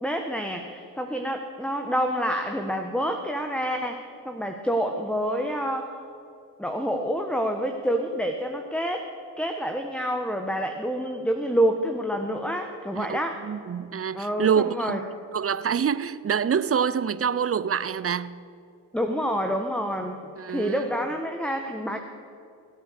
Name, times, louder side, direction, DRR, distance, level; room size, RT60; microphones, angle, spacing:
voice 1, 0.0-5.9 6.6-9.1 9.4-13.4 14.1-15.0 18.9-20.2 20.5-22.0, equal, ahead, 1.3 m, -27 dB
voice 2, 12.9-15.0 15.3-18.3 20.4-20.8, right 7 dB, 30° right, 0.6 m, -26 dB
20.5 x 8.7 x 6.8 m
supercardioid pair, 50°, 47 cm